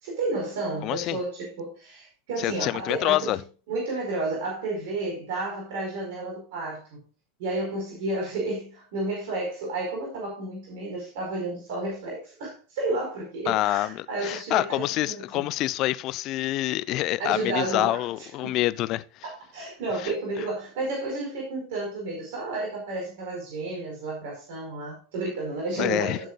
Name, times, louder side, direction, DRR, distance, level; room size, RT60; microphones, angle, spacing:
voice 1, 0.0-3.4 3.7-7.0 7.4-15.4 17.2-18.0 18.4-18.6 19.2-26.3, right 2 dB, 60° right, 4.8 m, -31 dB
voice 2, 0.8-1.2 2.4-3.4 13.5-19.2 20.0-20.1 20.4-20.5 25.8-26.2, left 16 dB, 45° left, 0.7 m, -27 dB
16.0 x 7.6 x 2.5 m
hypercardioid pair, 85°, 0 cm